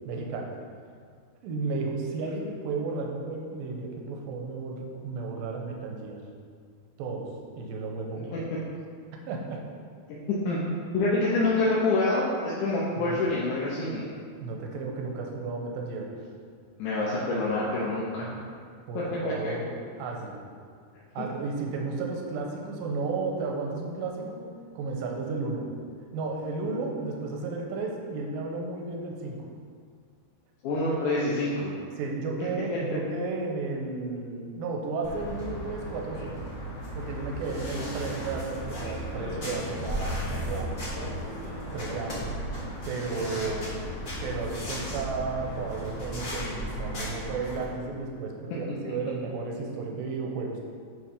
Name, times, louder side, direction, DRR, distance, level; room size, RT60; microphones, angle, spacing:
voice 1, 0.1-0.5 1.4-6.2 7.0-8.4 9.3-9.6 13.0-13.2 14.4-16.1 18.9-19.7 20.0-20.4 21.1-24.5 24.8-25.7 26.1-29.5 32.0-36.4 37.0-40.8 41.7-42.3 42.8-43.7 44.2-50.6, right 3 dB, 75° right, 1 dB, 2.2 m, -33 dB
voice 2, 10.1-10.6 10.9-14.1 16.8-18.3 18.9-19.3 21.2-21.3 30.6-31.7, left 2 dB, 75° left, -6 dB, 1.8 m, -26 dB
sound 1, 35.0-47.6, equal, 50° left, 0.9 m, -35 dB
9.5 x 3.3 x 5.2 m, 2.1 s
omnidirectional pair, 4.6 m